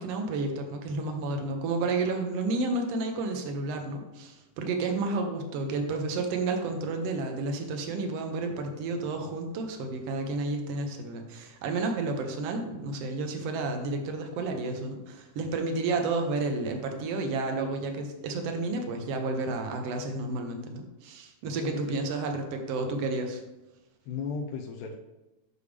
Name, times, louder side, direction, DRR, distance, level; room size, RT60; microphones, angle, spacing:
voice 1, 0.0-23.4, right 3 dB, 65° right, 4 dB, 1.6 m, -31 dB
voice 2, 21.6-22.1 24.1-25.0, left 5 dB, 85° left, 1 dB, 2.2 m, -35 dB
7.0 x 6.4 x 3.3 m, 1.0 s
omnidirectional pair, 3.6 m